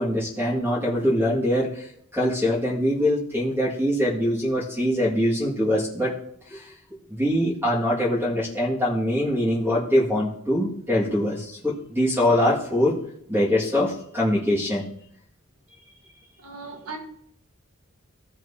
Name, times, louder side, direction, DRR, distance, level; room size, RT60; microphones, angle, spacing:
voice 1, 0.0-6.1 6.5-6.7 7.1-13.0 13.3-14.9, left 1 dB, 10° right, 2.1 m, -23 dB
voice 2, 16.4-17.0, right 4 dB, 80° right, 1.6 m, -37 dB
16.5 x 6.1 x 2.9 m
head